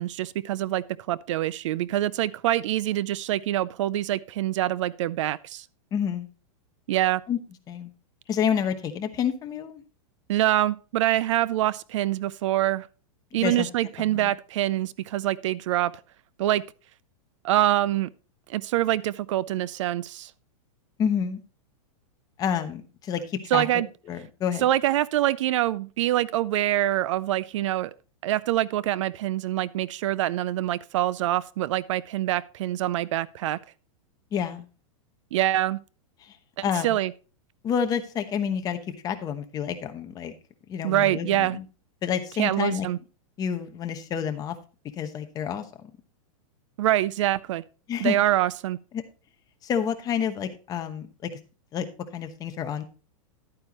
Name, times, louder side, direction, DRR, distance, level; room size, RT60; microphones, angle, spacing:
voice 1, 0.0-5.6 6.9-7.2 10.3-12.9 13.3-15.9 16.4-16.6 17.4-18.1 18.5-20.3 23.5-23.9 24.6-27.9 28.2-33.6 35.3-35.8 36.8-37.1 40.8-41.6 42.4-43.0 46.8-47.6 48.0-48.8, right 14 dB, 60° right, 0.4 m, -25 dB
voice 2, 5.9-6.3 7.3-7.4 7.7-7.9 8.3-9.8 13.3-13.7 14.0-14.3 21.0-21.4 22.4-23.8 24.1-24.7 34.3-34.7 36.2-36.4 36.6-37.0 37.6-40.3 40.7-41.6 42.0-42.9 43.4-44.6 44.9-45.9 47.9-48.1 48.9-49.0 49.6-51.4 51.7-51.8 52.1-52.8, left 8 dB, 20° left, 1.0 m, -29 dB
11.5 x 9.0 x 3.0 m
supercardioid pair, 155°, 18 cm